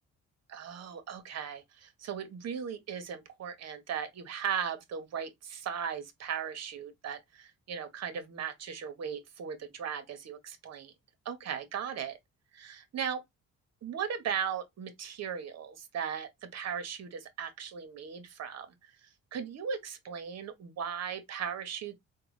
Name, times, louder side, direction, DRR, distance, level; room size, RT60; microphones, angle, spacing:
voice 1, 0.5-10.9 11.2-12.2 12.5-13.2 13.8-18.7 19.3-22.0, right 7 dB, 60° right, 1.0 m, -37 dB
3.8 x 2.3 x 3.0 m
cardioid pair, 90°, 30 cm